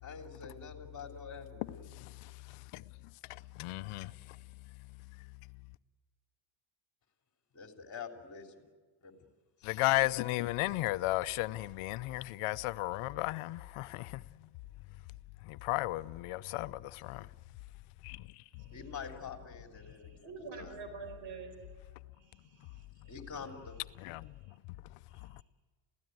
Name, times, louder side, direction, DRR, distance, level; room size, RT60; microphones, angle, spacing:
voice 1, 0.0-2.0 7.5-8.7 9.0-9.1 9.6-9.7 18.7-20.8 23.1-23.8, left 5 dB, 35° left, 3.4 m, -46 dB
voice 2, 1.9-2.8 3.3-4.4 9.6-14.5 15.4-17.3 18.0-18.4 24.0-24.3 25.3-25.4, left 18 dB, 85° left, 0.7 m, -35 dB
voice 3, 19.8-21.6 22.2-23.2 24.4-24.6 25.1-25.4, right 5 dB, 60° right, 4.7 m, -48 dB
28.0 x 16.5 x 9.3 m
cardioid pair, 110°, 50 cm